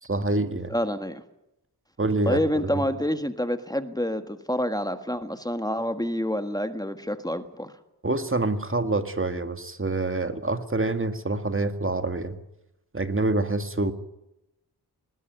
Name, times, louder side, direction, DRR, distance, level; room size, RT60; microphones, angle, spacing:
voice 1, 0.0-0.7 2.0-2.8 8.0-12.4 12.9-13.9, right 2 dB, 30° right, 9 dB, 2.0 m, -26 dB
voice 2, 0.7-1.2 2.2-7.7, equal, 10° left, 8 dB, 1.7 m, -28 dB
20.0 x 20.0 x 9.3 m, 0.87 s
cardioid pair, 60°, 39 cm